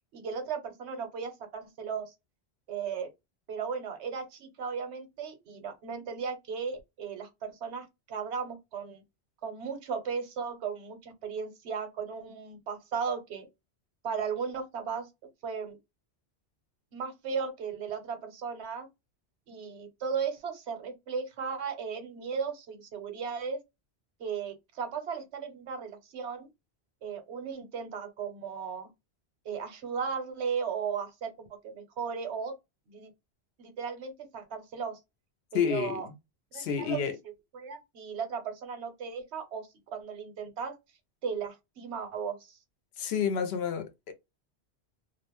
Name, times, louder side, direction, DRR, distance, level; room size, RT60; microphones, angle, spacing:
voice 1, 0.1-2.1 2.7-3.1 3.5-9.0 9.4-13.5 14.0-15.1 15.4-15.8 16.9-18.9 19.5-23.6 24.2-26.5 27.0-28.9 29.4-32.5 32.9-33.1 33.6-35.0 35.5-36.1 36.5-37.0 37.5-40.8 41.2-42.6, right 6 dB, 90° right, 1.0 m, -36 dB
voice 2, 35.5-36.1 36.5-37.2 43.0-44.1, left 7 dB, 75° left, 0.8 m, -30 dB
2.5 x 2.1 x 2.9 m
omnidirectional pair, 1.1 m